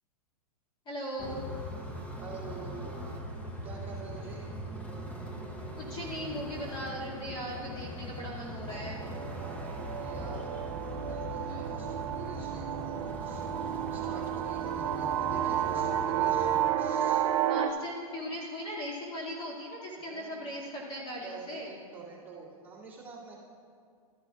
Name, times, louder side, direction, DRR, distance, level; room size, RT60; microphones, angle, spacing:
voice 1, 0.9-1.4 5.8-9.0 11.5-11.6 17.5-21.7, equal, 25° left, -5 dB, 2.3 m, -38 dB
sound 1, 1.2-16.7, equal, 5° left, 0.8 m, -41 dB
voice 2, 2.2-2.9 3.6-4.5 9.7-10.5 11.0-16.5 16.8-17.2 20.1-20.7 21.2-23.3, right 4 dB, 10° right, -8 dB, 2.5 m, -47 dB
sound 2, 8.7-17.7, right 10 dB, 60° right, 0.5 m, -31 dB
13.5 x 11.0 x 2.4 m, 2.2 s
hypercardioid pair, 125°, 19 cm